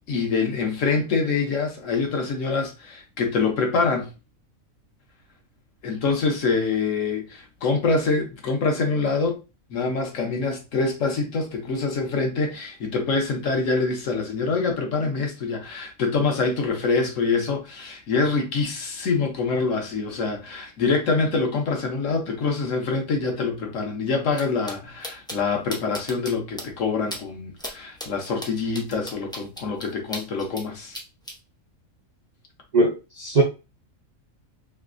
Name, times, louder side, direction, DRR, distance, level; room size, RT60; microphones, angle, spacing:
voice 1, 0.1-4.1 5.8-9.4 9.7-31.0, left 4 dB, 65° left, 1.2 m, -25 dB
sound 1, 24.3-24.4 24.7-24.8 25.0-25.4 25.7-26.3 26.6-26.7 27.1-27.2 27.6-27.7 28.0-30.6 30.9-31.3, equal, 5° left, 0.3 m, -35 dB
voice 2, 32.7-33.4, right 2 dB, 55° right, 0.4 m, -20 dB
3.2 x 2.9 x 2.5 m
omnidirectional pair, 1.5 m